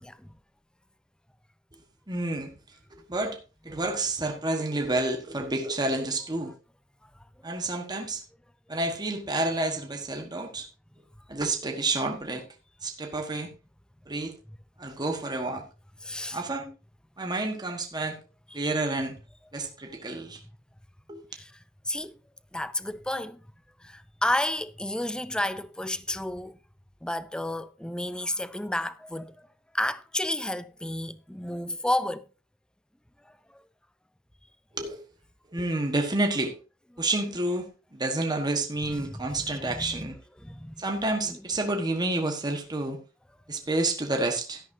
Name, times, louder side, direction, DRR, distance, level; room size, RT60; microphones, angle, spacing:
voice 1, 0.0-0.3 7.4-7.7 16.0-16.4 18.5-18.7 21.3-21.5 21.9-22.2 22.5-23.4 23.8-26.6 27.0-29.5 29.7-32.3 33.3-33.6 36.9-37.0 38.8-40.1 40.4-40.7 41.2-41.4, left 1 dB, 5° left, 0.5 m, -32 dB
voice 2, 2.1-2.5 2.9-3.4 3.6-6.5 7.4-8.2 8.7-10.7 11.3-12.4 12.8-13.5 14.1-14.3 14.8-15.7 16.3-16.7 17.2-18.2 18.5-19.2 19.5-20.4 21.1-21.2 34.7-35.0 35.5-36.6 37.0-40.2 40.8-43.0 43.5-44.6, right 2 dB, 20° right, 1.4 m, -29 dB
13.0 x 10.5 x 2.7 m
head